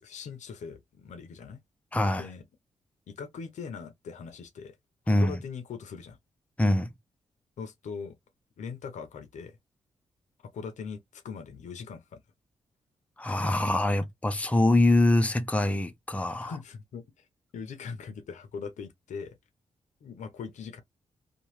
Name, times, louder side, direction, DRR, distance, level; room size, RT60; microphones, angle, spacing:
voice 1, 0.0-1.6 2.2-2.4 3.1-4.8 5.0-6.2 7.6-8.2 8.6-9.6 10.5-12.2 16.4-17.3 17.5-19.4 20.0-20.8, left 5 dB, 75° left, 0.7 m, -41 dB
voice 2, 1.9-2.2 5.1-5.4 6.6-6.9 13.2-16.5, left 1 dB, 10° left, 0.7 m, -24 dB
2.8 x 2.4 x 3.1 m
supercardioid pair, 50°, 13 cm